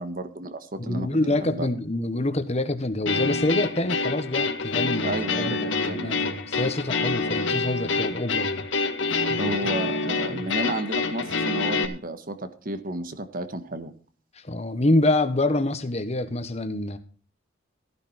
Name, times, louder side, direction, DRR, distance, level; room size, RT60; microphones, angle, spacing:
voice 1, 0.0-1.1 1.4-1.7 5.0-6.3 9.4-13.9, right 2 dB, 45° right, 1.5 m, -32 dB
voice 2, 0.8-8.7 9.3-9.5 10.3-10.6 14.3-17.0, left 2 dB, 35° left, 1.4 m, -26 dB
sound 1, 3.0-11.8, left 4 dB, 75° left, 1.9 m, -27 dB
15.0 x 10.5 x 4.4 m
head